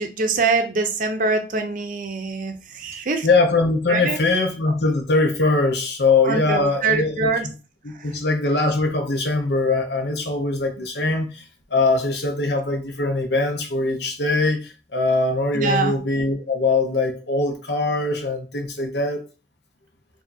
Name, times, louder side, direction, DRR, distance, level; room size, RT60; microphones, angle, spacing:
voice 1, 0.0-3.3 3.9-4.2 6.3-7.5 15.5-16.0, right 4 dB, 45° right, 5 dB, 0.6 m, -24 dB
voice 2, 3.2-7.3 7.8-11.4 11.7-19.2, left 3 dB, 65° left, 4 dB, 0.9 m, -22 dB
5.0 x 2.7 x 2.6 m, 0.33 s
head